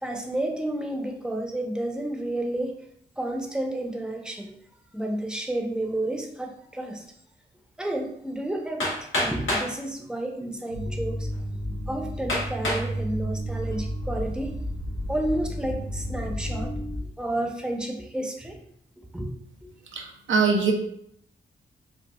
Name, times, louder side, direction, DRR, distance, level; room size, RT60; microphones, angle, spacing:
voice 1, 0.0-2.7 3.2-4.5 4.9-7.0 7.8-11.3 11.9-14.5 15.1-16.7 17.2-18.6 19.0-19.3 19.6-19.7, right 1 dB, 5° right, 1 dB, 0.8 m, -31 dB
Hammer, 8.8-9.7 10.6-10.7 11.3-11.4 12.3-12.9 13.5-13.9, left 1 dB, 70° left, 1.4 m, -27 dB
sound 1, 10.7-17.0, equal, 90° left, 1.0 m, -32 dB
voice 2, 19.9-20.7, right 5 dB, 70° right, 2 dB, 0.6 m, -23 dB
5.9 x 2.3 x 2.3 m, 0.70 s
cardioid pair, 55°, 20 cm